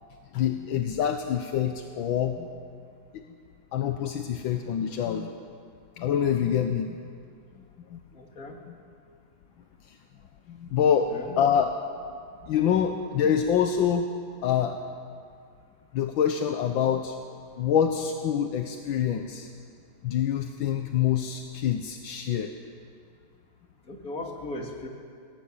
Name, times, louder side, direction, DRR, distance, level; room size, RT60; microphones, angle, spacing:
voice 1, 0.3-2.5 3.1-3.2 3.7-5.3 6.0-7.0 7.9-8.0 8.7-8.8 9.9-10.0 10.5-11.7 12.4-14.1 14.4-14.8 15.9-17.2 17.6-19.5 20.0-22.5, left 8 dB, 80° left, 6 dB, 1.7 m, -26 dB
voice 2, 8.1-8.6 11.1-11.3 23.9-24.9, left 2 dB, 45° left, 1 dB, 3.1 m, -37 dB
21.0 x 17.5 x 8.8 m, 2.3 s
omnidirectional pair, 2.1 m